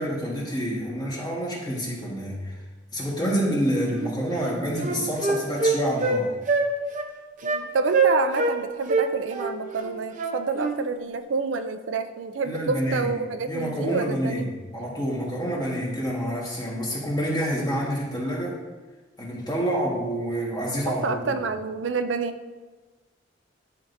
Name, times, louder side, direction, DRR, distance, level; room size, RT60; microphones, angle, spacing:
voice 1, 0.0-2.5 2.9-6.3 12.4-13.1 13.4-14.5 14.7-18.6 19.2-21.2, equal, 20° left, -4 dB, 1.5 m, -27 dB
Wind instrument woodwind instrument, 4.0-4.1 4.4-6.2 6.5-6.7 6.9-7.1 7.4-7.6 7.9-8.6 8.9-10.8, right 4 dB, 40° right, 0.7 m, -24 dB
voice 2, 7.4-14.5 20.9-22.4, right 4 dB, 85° right, 9 dB, 0.4 m, -28 dB
10.5 x 4.5 x 2.6 m, 1.3 s
head